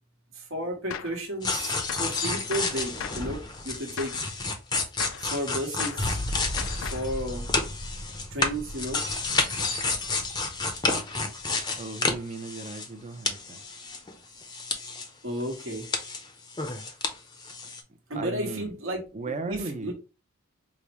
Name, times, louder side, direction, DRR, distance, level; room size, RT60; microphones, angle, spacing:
voice 1, 0.3-4.2 5.2-6.2 6.9-7.5 8.3-9.0 15.2-15.9 18.1-19.0 19.5-19.9, right 1 dB, 70° right, 1.1 m, -33 dB
Gunshot gunfire, 0.9-1.2 1.9-2.2 2.5-3.3 4.0-4.3 5.0-5.3 5.8-6.1 6.6-7.1, left 8 dB, 70° left, 0.3 m, -37 dB
sound 1, 1.4-13.0 13.3-15.1 15.4-17.1 17.4-17.8, left 3 dB, 20° left, 0.5 m, -30 dB
voice 2, 11.8-13.6 18.1-18.7 19.1-19.9, right 3 dB, 35° right, 0.5 m, -36 dB
4.9 x 2.1 x 2.9 m
head